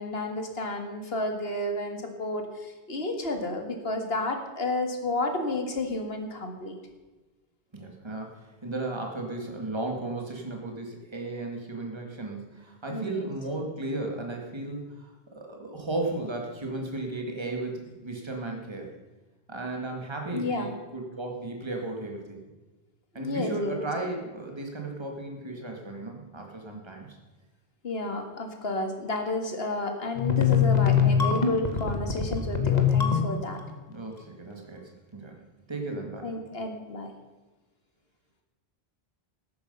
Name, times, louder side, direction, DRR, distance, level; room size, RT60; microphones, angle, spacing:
voice 1, 0.0-6.8 12.9-13.3 20.3-20.7 23.2-23.8 27.8-33.6 36.2-37.1, left 2 dB, 70° left, 5 dB, 2.1 m, -31 dB
voice 2, 7.7-18.9 19.5-22.4 23.1-27.1 31.2-31.3 33.9-34.8 35.1-35.4 35.7-36.3, right 2 dB, 25° right, 1 dB, 2.0 m, -35 dB
sound 1, 30.2-33.6, left 7 dB, 40° left, 1.5 m, -23 dB
13.5 x 11.0 x 5.5 m, 1.2 s
omnidirectional pair, 1.1 m